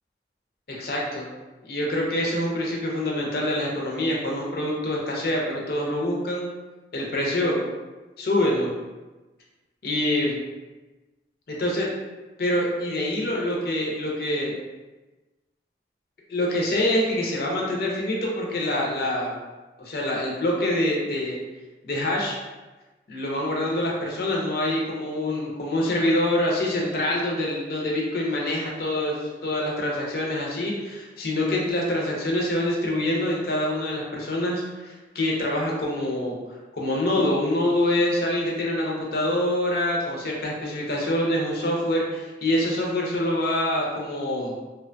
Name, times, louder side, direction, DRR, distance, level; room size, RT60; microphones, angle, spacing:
voice 1, 0.8-1.3 1.6-6.5 6.9-7.6 8.2-8.7 9.8-10.3 11.5-11.9 12.4-14.6 16.3-19.3 19.8-21.4 21.8-22.4 23.1-36.4 36.7-44.5, left 1 dB, 55° left, -2 dB, 0.5 m, -25 dB
2.7 x 2.1 x 2.5 m, 1.2 s
head